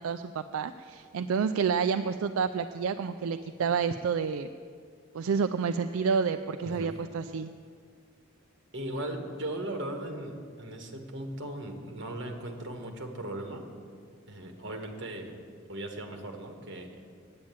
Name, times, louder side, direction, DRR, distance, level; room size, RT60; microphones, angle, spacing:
voice 1, 0.0-4.5 5.1-7.5, right 6 dB, 75° right, 8 dB, 0.4 m, -29 dB
voice 2, 8.7-13.6 14.3-15.3 15.7-16.9, right 1 dB, 55° right, 3 dB, 1.4 m, -38 dB
8.8 x 8.6 x 8.9 m, 2.2 s
head